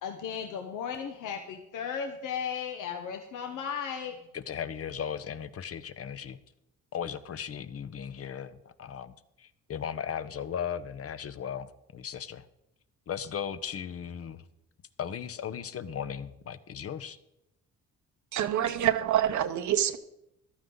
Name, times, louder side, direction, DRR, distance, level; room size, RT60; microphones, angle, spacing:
voice 1, 0.0-4.2, left 7 dB, 85° left, 4 dB, 1.2 m, -35 dB
voice 2, 4.3-6.4 6.9-12.4 13.1-14.4 15.0-17.2, left 8 dB, 50° left, 13 dB, 0.9 m, -37 dB
voice 3, 18.3-20.0, right 11 dB, 70° right, 7 dB, 1.0 m, -26 dB
14.5 x 12.5 x 3.9 m, 0.86 s
cardioid pair, 90°, 30 cm